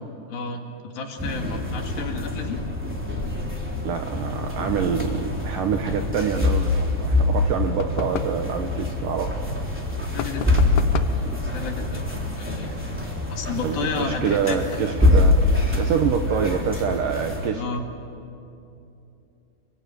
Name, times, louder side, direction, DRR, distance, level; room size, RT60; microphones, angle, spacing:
voice 1, 0.3-2.6 10.1-10.6 11.5-12.1 12.4-12.7 13.3-14.6 17.6-17.9, left 4 dB, 65° left, 2 dB, 3.9 m, -31 dB
sound 1, 1.2-17.5, left 2 dB, 5° right, 2.9 m, -25 dB
voice 2, 3.8-9.4 13.6-15.4 15.8-17.6, right 7 dB, 70° right, 5 dB, 2.3 m, -26 dB
sound 2, 7.8-8.4 10.2-11.2, left 9 dB, 80° left, 1.7 m, -32 dB
27.5 x 24.0 x 9.1 m, 2.7 s
omnidirectional pair, 4.8 m